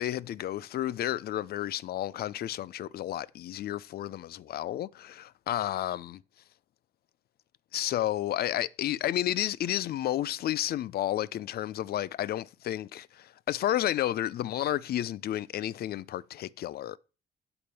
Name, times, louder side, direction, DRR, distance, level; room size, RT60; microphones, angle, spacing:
voice 1, 0.0-6.2 7.7-17.0, left 12 dB, 60° left, 0.5 m, -31 dB
8.8 x 4.2 x 6.8 m
cardioid pair, 80°, 18 cm